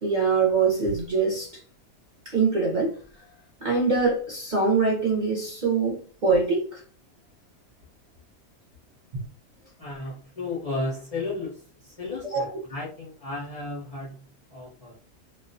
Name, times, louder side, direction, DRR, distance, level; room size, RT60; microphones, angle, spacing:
voice 1, 0.0-1.6 2.3-3.0 3.6-6.8 9.1-9.2 12.2-12.5, right 4 dB, 50° right, 0.6 m, -24 dB
voice 2, 9.8-14.3 14.5-14.9, left 2 dB, 50° left, 0.4 m, -34 dB
2.3 x 2.2 x 2.5 m
omnidirectional pair, 1.5 m